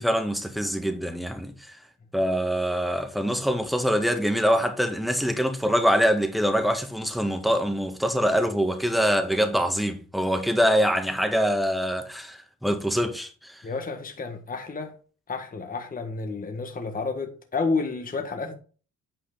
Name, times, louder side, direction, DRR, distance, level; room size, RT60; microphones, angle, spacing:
voice 1, 0.0-1.7 2.1-13.6, equal, ahead, 1.6 m, -24 dB
voice 2, 13.6-14.9 15.3-18.5, left 4 dB, 30° left, 1.4 m, -30 dB
9.0 x 4.9 x 3.8 m
cardioid pair, 90°, 30 cm